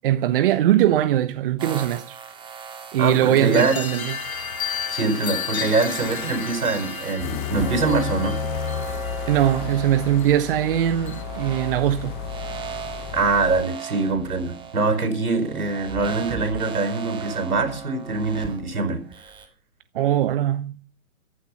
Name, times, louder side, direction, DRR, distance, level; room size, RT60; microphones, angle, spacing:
voice 1, 0.0-2.2 2.9-4.2 9.3-12.2 19.9-20.8, right 12 dB, 40° right, 1.0 m, -21 dB
sound 1, 1.6-19.5, right 6 dB, 10° right, 2.1 m, -37 dB
voice 2, 3.0-3.7 4.9-8.4 13.1-19.0, right 3 dB, 90° right, 5.2 m, -23 dB
sound 2, 3.5-11.2, left 8 dB, 75° left, 2.1 m, -34 dB
sound 3, 7.2-13.6, left 14 dB, 20° left, 0.6 m, -32 dB
15.0 x 12.0 x 5.8 m
hypercardioid pair, 135°, 42 cm